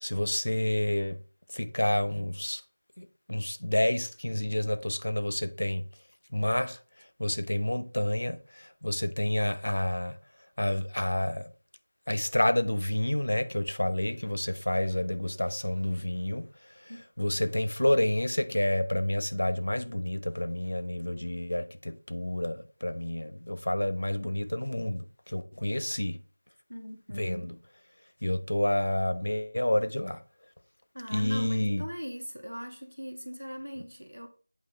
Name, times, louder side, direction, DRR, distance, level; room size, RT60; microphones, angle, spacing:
voice 1, 0.0-1.2 1.5-2.6 3.0-5.8 6.3-10.2 10.6-11.5 12.1-16.9 17.2-26.2 27.2-27.5 28.2-30.2 31.1-31.8, left 1 dB, 65° left, 0.8 m, -29 dB
voice 2, 26.7-27.5 30.9-34.3, equal, 90° right, 1.5 m, -40 dB
8.3 x 3.9 x 4.7 m
figure-of-eight pair, 170°, 0 cm